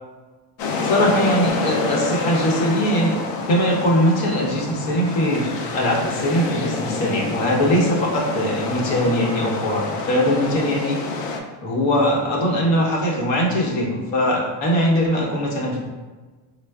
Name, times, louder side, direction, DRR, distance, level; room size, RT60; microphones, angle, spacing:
sound 1, 0.6-11.4, left 3 dB, 50° left, 0.5 m, -28 dB
voice 1, 0.8-3.2 3.5-11.0 11.6-15.8, equal, 70° left, -2 dB, 1.0 m, -21 dB
4.3 x 2.2 x 2.3 m, 1.3 s
cardioid pair, 125°, 49 cm